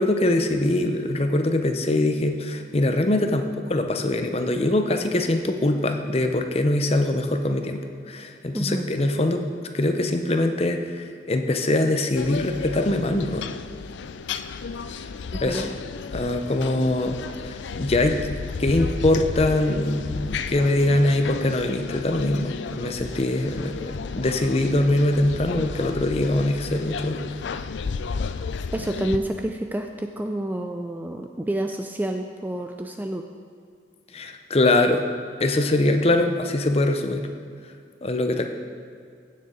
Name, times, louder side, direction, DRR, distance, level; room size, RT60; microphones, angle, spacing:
voice 1, 0.0-9.4 9.7-13.5 15.4-15.7 16.1-18.3 18.6-27.2 34.1-35.0 35.4-37.3 38.0-38.5, left 1 dB, 30° left, 6 dB, 0.6 m, -23 dB
voice 2, 8.5-8.9 15.3-15.7 28.7-33.3, right 1 dB, 10° right, 5 dB, 0.3 m, -29 dB
sound 1, 12.2-29.2, left 5 dB, 70° left, 0.4 m, -33 dB
16.0 x 6.6 x 3.8 m, 2.3 s
head